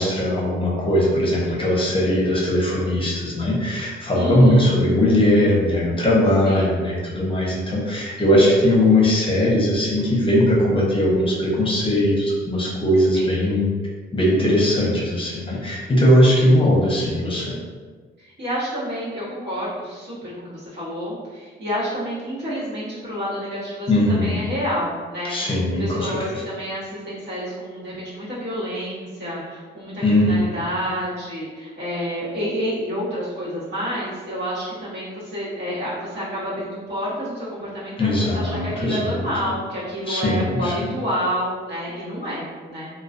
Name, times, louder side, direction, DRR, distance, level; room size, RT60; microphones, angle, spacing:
voice 1, 0.0-13.7 14.1-17.6 23.9-24.4 25.2-26.4 30.0-30.5 38.0-39.2 40.1-40.9, left 1 dB, 25° left, -4 dB, 0.7 m, -19 dB
voice 2, 4.1-4.8 6.4-6.6 13.1-13.5 16.3-16.4 18.2-25.3 25.8-42.9, equal, 65° right, -9 dB, 1.2 m, -29 dB
2.3 x 2.2 x 2.5 m, 1.5 s
cardioid pair, 90°, 20 cm